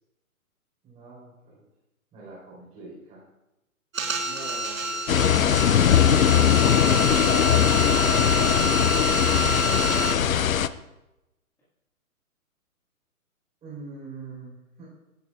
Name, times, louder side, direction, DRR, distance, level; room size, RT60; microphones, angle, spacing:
voice 1, 0.8-1.6 2.1-3.2 6.5-9.7 13.6-14.8, right 3 dB, 15° right, -7 dB, 4.4 m, -44 dB
sound 1, 3.9-10.1, right 2 dB, 65° right, 1.5 m, -28 dB
voice 2, 4.2-6.5 9.9-10.1, equal, 5° left, -9 dB, 1.9 m, -45 dB
sound 2, 5.1-10.7, left 9 dB, 70° left, 0.6 m, -20 dB
16.0 x 9.1 x 2.4 m, 0.95 s
figure-of-eight pair, 130°, 43 cm